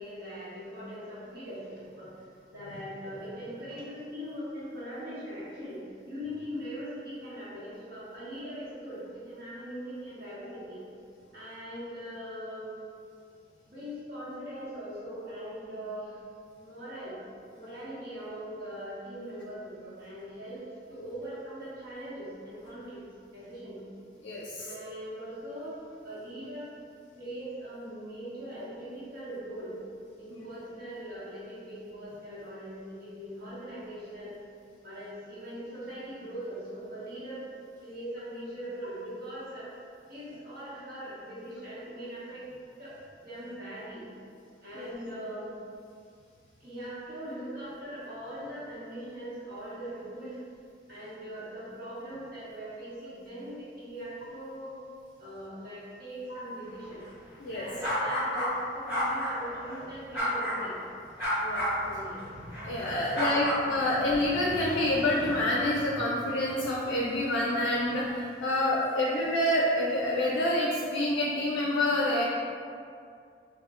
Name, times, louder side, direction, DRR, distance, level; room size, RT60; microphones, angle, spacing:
voice 1, 0.0-2.2 2.5-10.8 11.3-12.8 13.7-16.2 16.6-17.2 17.6-23.0 23.3-23.8 24.6-25.8 26.0-26.7 27.1-29.8 30.2-34.3 34.8-37.4 37.7-39.7 40.1-42.4 42.8-44.0 44.6-45.5 46.6-50.4 50.9-54.7 55.2-57.1 57.5-60.8 61.8-62.2 62.9-63.5, equal, 50° right, -12 dB, 1.1 m, -41 dB
voice 2, 24.2-24.7 30.3-30.4 44.7-44.9 56.3-56.4 57.4-57.7 61.4-61.7 62.6-72.2, left 1 dB, 90° left, -5 dB, 0.4 m, -27 dB
sound 1, 57.8-58.5 58.8-59.8 60.1-60.7 61.2-65.4, equal, 5° right, 1.1 m, -32 dB
2.3 x 2.1 x 3.6 m, 2.3 s
head